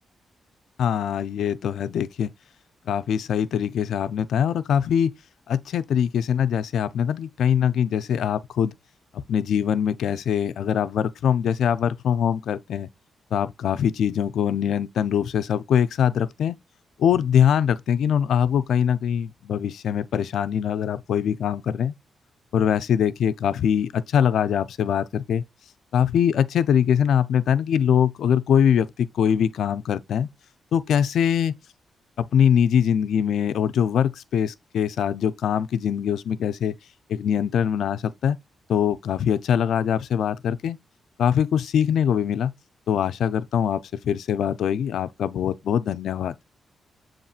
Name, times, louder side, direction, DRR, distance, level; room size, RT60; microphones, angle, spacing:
voice 1, 0.8-2.3 2.9-5.1 5.5-8.7 9.1-12.9 13.3-16.6 17.0-21.9 22.5-25.5 25.9-30.3 30.7-31.5 32.2-36.7 37.1-38.4 38.7-40.8 41.2-42.5 42.9-46.3, left 8 dB, 80° left, 0.4 m, -23 dB
7.2 x 3.0 x 2.4 m
cardioid pair, 90°, 0 cm